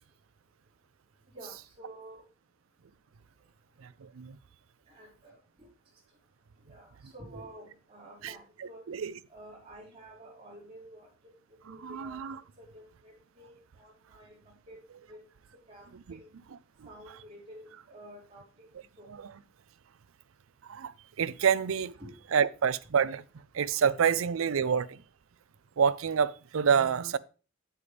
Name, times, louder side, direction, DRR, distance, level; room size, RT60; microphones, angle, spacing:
voice 1, 1.3-2.2 4.9-5.3 6.7-8.8 9.3-11.1 11.7-12.3 12.6-14.4 14.7-14.8 15.1-15.2 15.7-15.8 16.1-16.3 16.8-18.7 19.0-19.1 22.0-22.2, right 1 dB, 30° right, 5.2 m, -50 dB
voice 2, 3.8-4.4 8.2-8.3 8.9-9.1 11.7-12.4 19.2-19.3 20.7-21.9 22.3-23.2 23.5-25.0 25.8-27.2, right 7 dB, 85° right, 0.5 m, -27 dB
8.9 x 8.5 x 3.4 m
head